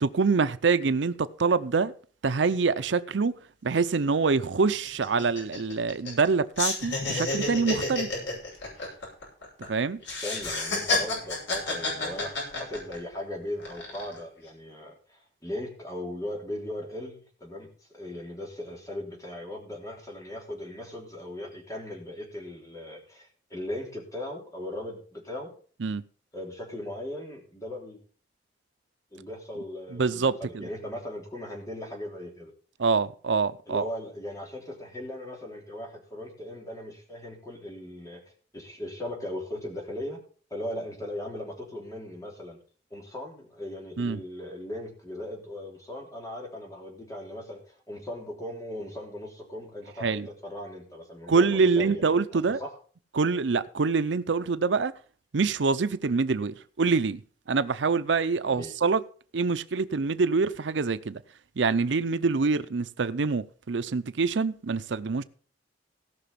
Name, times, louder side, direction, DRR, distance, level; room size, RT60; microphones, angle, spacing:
voice 1, 0.0-1.9 2.2-3.3 3.6-8.1 9.7-10.0 25.8-26.0 29.9-30.6 32.8-33.8 44.0-44.2 50.0-50.3 51.3-52.6 53.1-54.9 55.3-57.2 57.5-59.0 59.3-61.2 61.6-65.2, right 4 dB, 80° right, 0.6 m, -25 dB
sound 1, 3.8-3.9 4.1-4.3 4.7-6.3 6.6-9.7 10.0-13.2 13.6-14.2, left 2 dB, 80° left, 6.4 m, -30 dB
voice 2, 10.2-25.5 26.3-28.0 29.1-32.5 33.7-38.2 38.5-40.2 40.5-42.6 42.9-52.0 52.3-52.7 58.5-58.7, left 1 dB, 20° left, 3.4 m, -38 dB
17.5 x 6.0 x 5.7 m
head